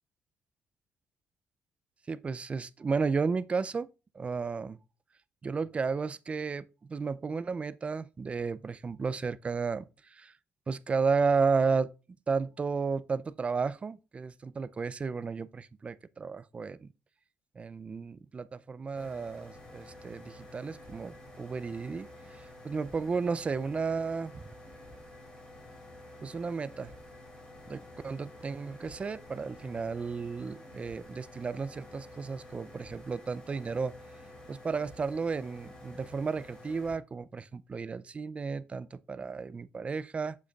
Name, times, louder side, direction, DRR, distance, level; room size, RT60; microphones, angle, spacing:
voice 1, 2.1-3.9 4.1-4.8 5.4-10.3 10.7-11.9 12.3-16.9 17.6-24.4 26.2-26.9 27.7-33.9 34.5-40.4, right 5 dB, 30° right, 0.4 m, -33 dB
sound 1, 19.0-36.9, left 1 dB, 20° left, 3.4 m, -50 dB
7.5 x 6.3 x 2.3 m
cardioid pair, 95°, 4 cm